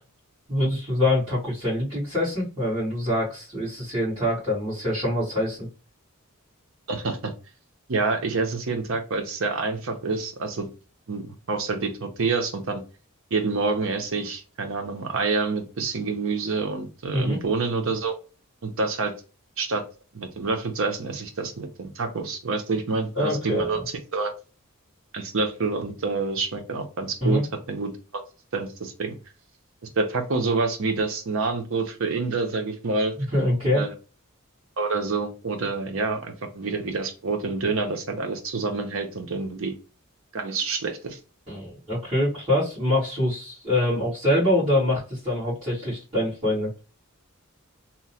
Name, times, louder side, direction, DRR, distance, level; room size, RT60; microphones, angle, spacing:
voice 1, 0.5-5.7 17.1-17.4 23.1-23.8 27.2-27.4 33.3-33.9 41.5-46.7, left 1 dB, 25° right, -13 dB, 1.5 m, -24 dB
voice 2, 6.9-7.3 7.9-10.7 11.1-12.8 13.3-18.1 18.6-19.1 19.6-19.8 20.1-23.8 24.1-24.3 25.1-27.4 27.7-28.2 28.5-29.2 30.0-33.1 33.7-33.9 34.8-39.8 40.3-41.2, right 4 dB, 65° right, 5 dB, 0.6 m, -27 dB
2.9 x 2.1 x 2.8 m, 0.34 s
head